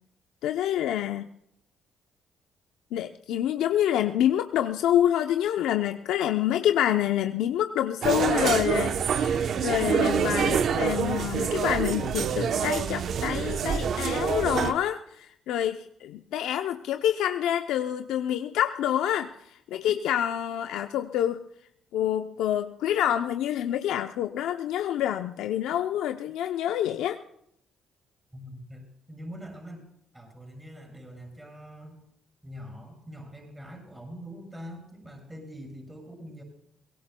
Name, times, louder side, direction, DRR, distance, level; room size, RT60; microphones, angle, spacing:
voice 1, 0.4-1.3 2.9-21.4 21.9-27.2, left 11 dB, 80° left, 7 dB, 0.6 m, -27 dB
sound 1, 8.0-14.7, right 7 dB, 65° right, 0.8 m, -26 dB
voice 2, 28.3-29.9 30.1-32.0 32.4-36.4, equal, 15° right, 1 dB, 7.2 m, -43 dB
23.5 x 18.0 x 2.2 m, 0.71 s
supercardioid pair, 65°, 0 cm